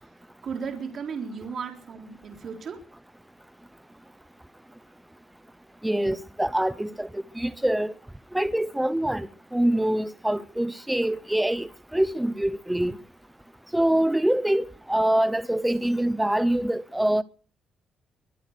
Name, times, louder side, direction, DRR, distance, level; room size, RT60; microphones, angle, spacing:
voice 1, 0.4-2.8, right 6 dB, 55° right, 3.8 m, -35 dB
voice 2, 5.8-7.9 8.3-9.3 9.5-12.9 13.7-17.2, right 1 dB, 5° right, 0.7 m, -25 dB
23.5 x 8.7 x 6.6 m
cardioid pair, 90°, 0 cm